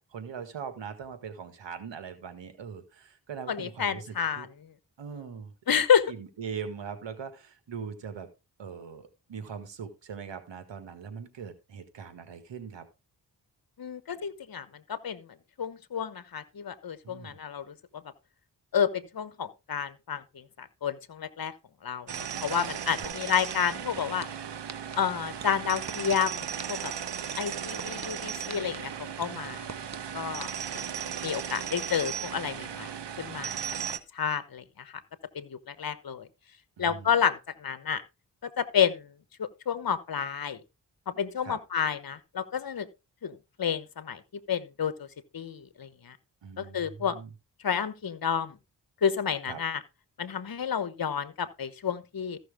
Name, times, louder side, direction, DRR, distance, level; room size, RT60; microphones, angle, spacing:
voice 1, 0.0-4.5 5.0-5.5 6.1-8.3 8.6-12.8 17.0-17.4 23.0-23.2 36.8-37.2 41.4-41.6 46.4-47.3 49.5-49.6, right 6 dB, 90° right, 1.8 m, -41 dB
voice 2, 3.5-4.5 5.7-6.1 13.8-15.3 15.6-17.7 18.7-21.5 21.8-24.3 25.0-26.9 27.4-28.9 29.2-29.8 30.1-32.9 33.2-33.6 34.1-34.9 35.3-36.3 36.8-38.0 38.4-39.1 39.4-40.6 41.1-42.9 43.2-44.2 44.5-45.1 45.3-46.2 46.6-47.2 47.6-48.6 49.0-49.8 50.2-52.4, left 7 dB, 55° left, 1.2 m, -30 dB
sound 1, 22.1-34.0, right 8 dB, 75° right, 1.0 m, -36 dB
sound 2, 23.0-23.1 23.5-24.2 24.7-25.0 25.4-26.2 26.6-26.9 27.3-28.1 28.5-28.8 29.2-30.0 30.4-30.5, right 4 dB, 40° right, 1.4 m, -40 dB
14.5 x 6.2 x 3.5 m
cardioid pair, 45°, 42 cm